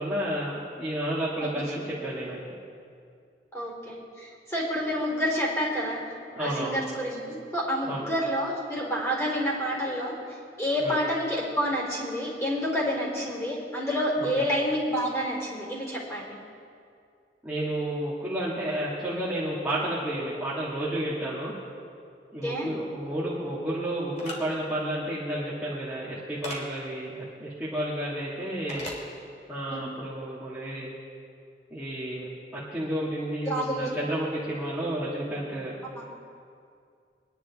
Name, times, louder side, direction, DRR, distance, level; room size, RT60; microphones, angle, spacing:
voice 1, 0.0-2.5 6.3-6.8 7.8-8.1 10.8-11.0 14.2-14.5 17.4-21.5 22.3-27.1 27.4-28.9 29.5-30.9 31.7-35.8, right 1 dB, 10° right, -10 dB, 2.0 m, -31 dB
voice 2, 3.5-6.0 6.4-10.1 10.6-16.3 22.4-22.7 29.7-29.8 33.5-33.9 36.0-36.1, equal, 15° left, -4 dB, 4.0 m, -29 dB
sound 1, 24.2-24.4 26.4-26.6 28.7-29.0, left 1 dB, 45° left, 2.4 m, -36 dB
22.5 x 10.5 x 3.6 m, 2.3 s
head